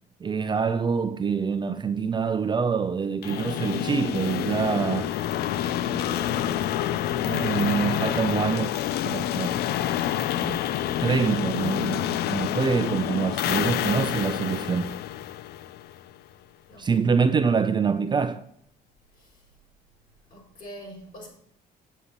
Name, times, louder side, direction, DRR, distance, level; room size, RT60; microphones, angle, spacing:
voice 1, 0.2-5.1 5.8-6.6 7.2-8.7 9.0-9.5 10.4-10.6 11.0-14.9 16.8-18.4, right 5 dB, 25° right, 0.6 m, -25 dB
sound 1, 3.2-16.1, left 11 dB, 70° left, 0.5 m, -28 dB
voice 2, 16.7-17.0 19.2-19.3 20.3-21.3, equal, 55° left, 5.1 m, -44 dB
8.3 x 8.2 x 5.7 m
cardioid pair, 110°, 17 cm